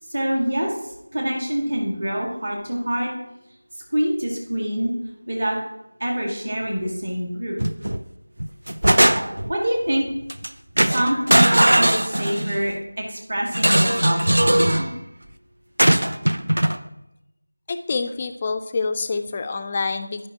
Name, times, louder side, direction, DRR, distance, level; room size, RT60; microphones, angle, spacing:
voice 1, 0.1-3.1 3.9-4.9 5.3-5.6 6.0-7.7 9.5-10.1 10.7-15.0, right 1 dB, 55° right, -1 dB, 1.8 m, -25 dB
sound 1, 7.6-8.0 8.4-9.5 10.3-10.5 10.8-12.6 13.5-14.9 15.8-16.8, right 1 dB, 75° right, 0.5 m, -19 dB
voice 2, 17.7-20.3, left 4 dB, 20° left, 8 dB, 0.3 m, -26 dB
12.5 x 5.2 x 2.8 m, 0.90 s
figure-of-eight pair, 175°, 0 cm